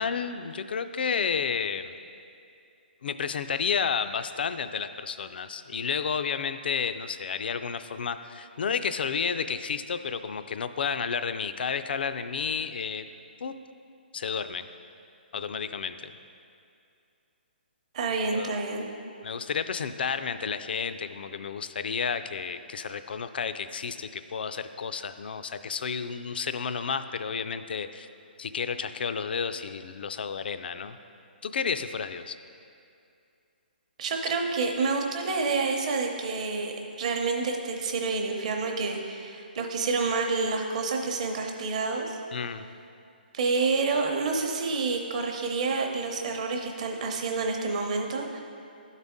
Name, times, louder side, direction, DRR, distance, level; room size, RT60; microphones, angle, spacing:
voice 1, 0.0-1.9 3.0-13.1 13.4-13.5 14.1-14.7 15.3-16.1 18.3-18.6 19.2-28.1 28.4-31.0 31.4-32.4 42.3-42.7, left 6 dB, 70° left, 10 dB, 0.3 m, -31 dB
voice 2, 17.9-18.9 34.0-42.2 43.3-48.4, right 4 dB, 40° right, 2 dB, 0.7 m, -28 dB
12.0 x 4.0 x 3.6 m, 2.5 s
hypercardioid pair, 165°, 6 cm